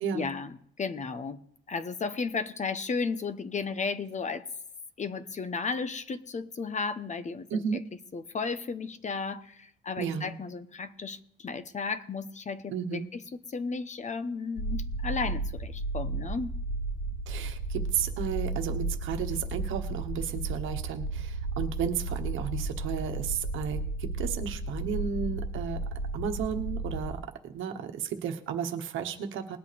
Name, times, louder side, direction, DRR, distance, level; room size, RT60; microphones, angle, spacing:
voice 1, 0.1-1.4 1.7-4.5 5.0-7.8 8.1-13.2 13.5-16.5, left 4 dB, 35° left, 13 dB, 0.9 m, -34 dB
voice 2, 7.5-7.8 10.0-10.3 12.7-13.1 17.3-25.8 26.1-29.6, right 7 dB, 85° right, 5 dB, 1.2 m, -33 dB
sound 1, 14.6-27.1, right 2 dB, 65° left, 5.9 m, -33 dB
20.5 x 8.3 x 3.4 m, 0.71 s
cardioid pair, 90°, 20 cm